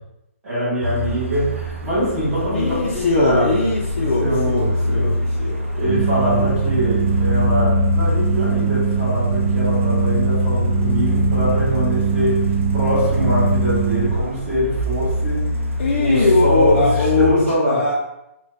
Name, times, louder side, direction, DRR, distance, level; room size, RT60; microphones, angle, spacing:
voice 1, 0.4-5.2 5.7-12.5 12.7-15.5 16.0-17.9, equal, 10° right, -10 dB, 0.8 m, -23 dB
Truck, 0.8-17.3, left 2 dB, 60° right, 0.6 m, -24 dB
voice 2, 2.5-5.6 15.8-17.9, left 3 dB, 45° left, -4 dB, 0.4 m, -20 dB
sound 1, 5.8-14.2, right 8 dB, 30° right, 1.3 m, -22 dB
3.8 x 2.1 x 2.5 m, 0.87 s
hypercardioid pair, 180°, 8 cm